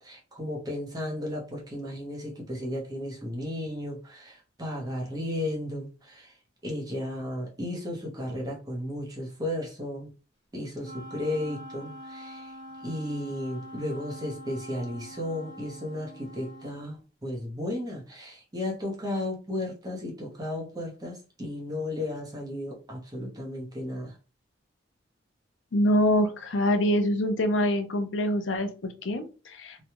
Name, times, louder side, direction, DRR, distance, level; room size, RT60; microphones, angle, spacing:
voice 1, 0.0-6.3 6.6-10.1 10.5-12.5 12.8-24.1, left 1 dB, 20° right, -2 dB, 0.9 m, -34 dB
Wind instrument woodwind instrument, 10.8-16.9, equal, 25° left, 1.0 m, -44 dB
voice 2, 25.7-29.8, left 1 dB, 85° left, 7 dB, 0.6 m, -25 dB
3.2 x 2.3 x 2.8 m, 0.33 s
head